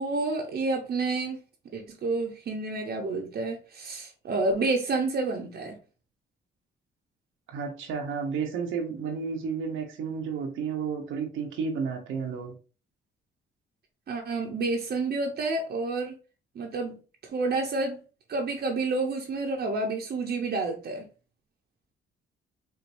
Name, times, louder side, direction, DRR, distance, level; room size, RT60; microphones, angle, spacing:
voice 1, 0.0-1.4 1.7-5.8 14.1-16.2 16.5-18.0 18.3-21.1, right 3 dB, 55° right, 0.8 m, -29 dB
voice 2, 7.5-12.5, right 5 dB, 85° right, 0.9 m, -32 dB
4.5 x 2.6 x 2.6 m
cardioid pair, 90°, 20 cm